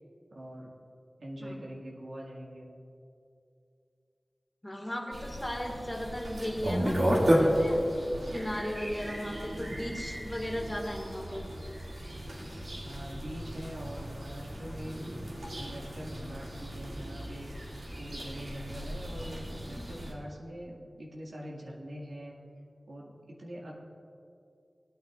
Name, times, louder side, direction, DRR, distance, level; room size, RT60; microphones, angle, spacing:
voice 1, 0.3-0.7 1.2-2.7 12.8-15.0 15.5-17.6 18.0-22.4 22.9-23.7, equal, 90° right, -4 dB, 1.9 m, -43 dB
voice 2, 4.6-7.8 8.3-11.5, equal, 20° left, 0 dB, 1.9 m, -36 dB
sound 1, 5.1-20.1, equal, 70° right, 2.3 m, -33 dB
19.5 x 9.2 x 2.5 m, 2.5 s
wide cardioid pair, 50°, 0 cm